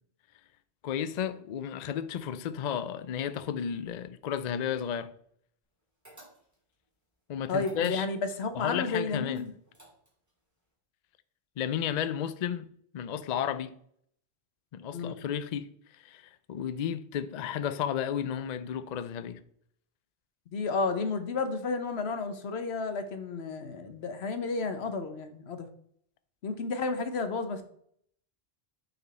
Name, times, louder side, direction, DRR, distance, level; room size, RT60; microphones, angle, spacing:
voice 1, 0.8-5.1 7.3-8.1 8.5-9.4 11.6-12.7 12.9-13.7 14.7-15.7 16.0-19.4, left 9 dB, 55° left, 0.5 m, -33 dB
sound 1, 6.0-6.7 7.5-8.4 9.3-10.3, right 1 dB, 15° right, 2.8 m, -53 dB
voice 2, 7.5-9.5 14.9-15.2 20.5-25.7 26.4-27.6, left 4 dB, 85° left, 1.2 m, -32 dB
8.2 x 4.6 x 4.2 m
omnidirectional pair, 1.1 m